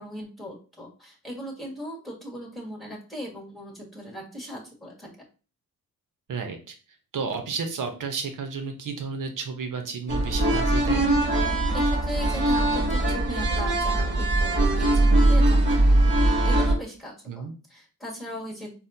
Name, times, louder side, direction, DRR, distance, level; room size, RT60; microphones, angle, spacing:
voice 1, 0.0-5.1 11.5-18.7, equal, ahead, -2 dB, 1.6 m, -38 dB
voice 2, 6.3-6.7 7.1-11.1 17.3-17.5, right 5 dB, 60° right, 5 dB, 0.9 m, -32 dB
sound 1, 10.1-16.8, right 1 dB, 35° right, 1.3 m, -21 dB
4.1 x 2.3 x 2.7 m, 0.35 s
cardioid pair, 70°, 35 cm